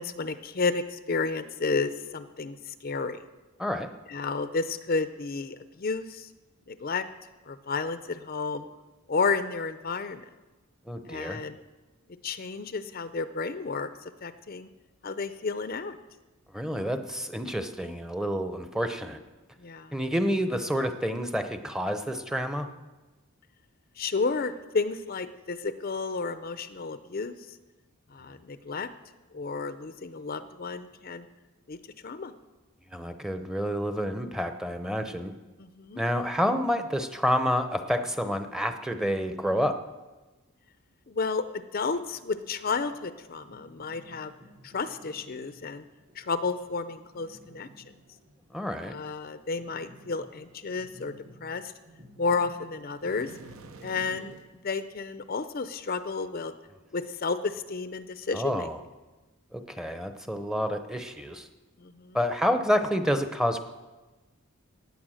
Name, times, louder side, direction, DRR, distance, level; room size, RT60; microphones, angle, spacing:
voice 1, 0.0-3.2 4.1-6.3 6.7-7.1 7.5-8.7 9.1-10.2 11.1-11.6 12.2-13.9 14.2-14.7 15.0-16.0 19.6-19.9 24.0-27.6 28.1-28.9 29.3-31.3 31.7-31.8 32.0-32.3 35.6-36.0 41.1-44.3 44.6-45.8 46.2-47.8 48.8-51.1 51.4-51.7 52.2-53.3 53.8-54.4 54.6-56.5 56.9-58.7 61.8-62.2, left 4 dB, 40° left, 12 dB, 0.5 m, -32 dB
voice 2, 3.6-3.9 10.9-11.4 16.5-19.2 19.9-22.7 32.9-35.3 36.0-39.8 48.5-49.0 58.3-58.8 59.5-61.5 62.1-63.7, equal, 5° right, 8 dB, 0.7 m, -29 dB
sound 1, 42.1-54.4, equal, 50° right, 5.9 m, -55 dB
sound 2, 53.0-54.5, right 3 dB, 70° right, 1.0 m, -48 dB
16.5 x 9.5 x 6.3 m, 1.2 s
head